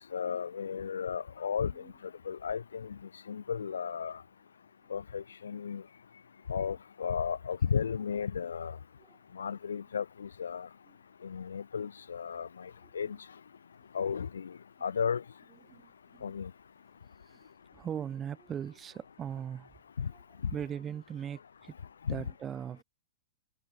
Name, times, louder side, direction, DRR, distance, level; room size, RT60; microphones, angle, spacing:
voice 1, 0.1-1.8 2.3-3.0 3.3-4.2 4.9-5.8 6.5-8.8 9.3-10.7 11.2-13.2 13.9-14.5 14.8-15.2 16.2-16.5 20.0-20.1 22.1-22.2, left 6 dB, 75° left, 0.3 m, -34 dB
voice 2, 15.7-16.4 17.3-17.5 17.7-19.7 20.1-20.2 20.5-21.8 22.1-22.8, right 8 dB, 25° right, 1.3 m, -40 dB
figure-of-eight pair, 100°, 0 cm